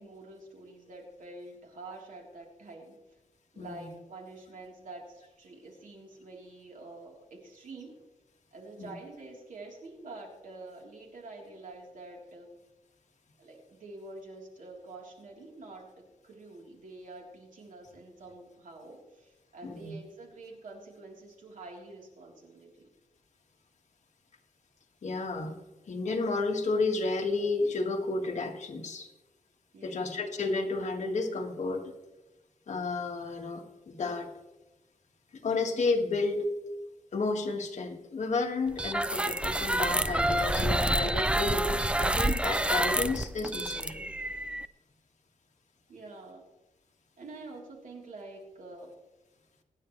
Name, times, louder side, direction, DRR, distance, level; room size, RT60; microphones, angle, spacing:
voice 1, 0.0-3.0 3.5-8.0 8.5-12.5 13.4-22.9 29.7-30.3 45.9-46.4 47.2-48.9, right 2 dB, 75° right, -1 dB, 3.7 m, -47 dB
voice 2, 3.6-3.9 8.8-8.9 19.6-19.9 25.0-25.6 25.9-29.1 29.8-31.9 32.7-34.3 35.4-36.5 37.1-44.1, left 3 dB, 60° left, 2 dB, 1.9 m, -31 dB
sound 1, 38.7-44.6, right 1 dB, 10° right, 0.5 m, -28 dB
25.0 x 10.0 x 3.3 m, 1.1 s
wide cardioid pair, 135°, 14 cm